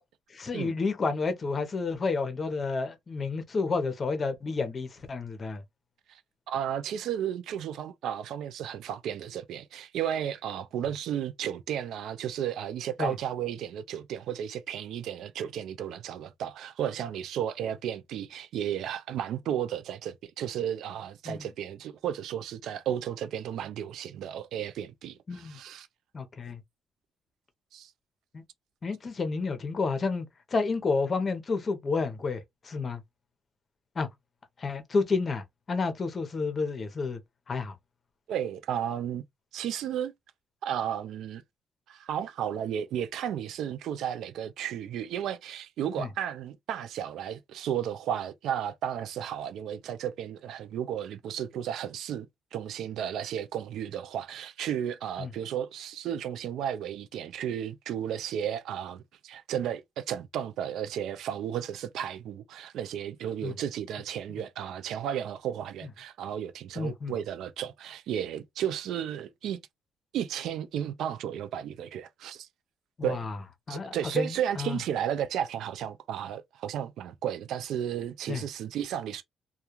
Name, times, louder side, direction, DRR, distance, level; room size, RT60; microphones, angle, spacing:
voice 1, 0.3-5.6 13.0-13.1 21.2-21.5 25.3-25.6 26.1-26.6 28.3-28.4 28.8-33.0 34.0-34.1 34.6-37.2 37.5-37.7 46.0-46.1 55.2-55.3 63.4-63.5 66.8-67.1 73.0-73.4 73.7-74.8 78.3-78.4, left 4 dB, 40° left, 0.7 m, -30 dB
voice 2, 6.5-25.9 27.7-27.9 38.3-39.2 39.5-40.1 40.6-41.4 41.9-52.3 52.5-69.6 70.1-72.5 73.0-73.2 73.7-79.2, right 9 dB, 80° right, 0.3 m, -33 dB
2.2 x 2.2 x 2.9 m
cardioid pair, 90°, 0 cm